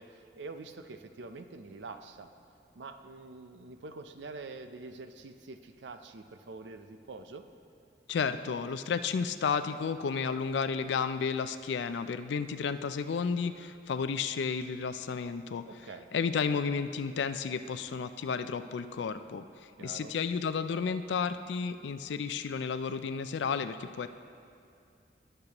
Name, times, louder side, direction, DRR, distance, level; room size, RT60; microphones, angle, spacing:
voice 1, 0.0-2.3 2.7-7.4 15.7-16.1 19.8-20.1, right 3 dB, 80° right, 8 dB, 0.5 m, -46 dB
voice 2, 8.1-15.6 16.1-19.4 19.8-24.1, left 5 dB, 80° left, 11 dB, 0.4 m, -32 dB
18.5 x 6.7 x 2.9 m, 2.5 s
head